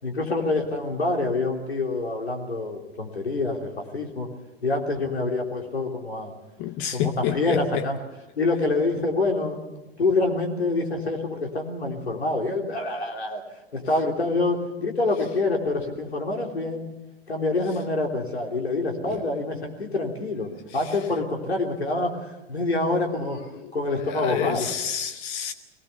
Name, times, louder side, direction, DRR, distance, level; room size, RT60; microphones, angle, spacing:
voice 1, 0.0-4.3 4.6-6.3 6.9-8.0 8.4-9.6 10.0-13.4 13.7-16.9 17.3-23.4 23.7-24.7, left 2 dB, 80° left, 3.4 m, -26 dB
voice 2, 6.6-7.8 19.1-19.2 24.1-25.5, left 10 dB, 40° left, 0.9 m, -28 dB
22.0 x 18.0 x 6.9 m
figure-of-eight pair, 95°, 31 cm